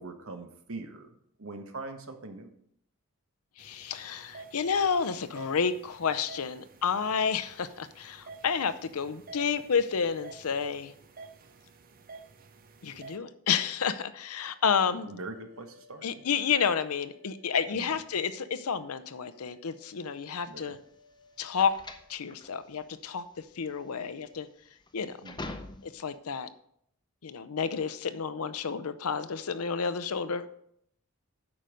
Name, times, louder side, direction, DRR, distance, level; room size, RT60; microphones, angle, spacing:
voice 1, 0.0-2.5 14.9-16.2 17.7-18.0 20.5-20.8 25.2-25.6, right 2 dB, 70° right, 7 dB, 1.1 m, -43 dB
voice 2, 3.6-10.9 12.8-15.1 16.0-20.8 21.4-21.8 22.1-23.2 23.6-24.5 24.9-25.2 25.8-26.5 27.2-30.5, left 6 dB, 90° left, 14 dB, 0.6 m, -30 dB
sound 1, 3.6-13.2, right 4 dB, 40° right, 0.7 m, -51 dB
sound 2, 14.5-22.1, left 3 dB, 70° left, 3.3 m, -61 dB
sound 3, 20.2-26.2, left 2 dB, 20° left, 0.6 m, -45 dB
8.7 x 5.3 x 6.3 m, 0.70 s
head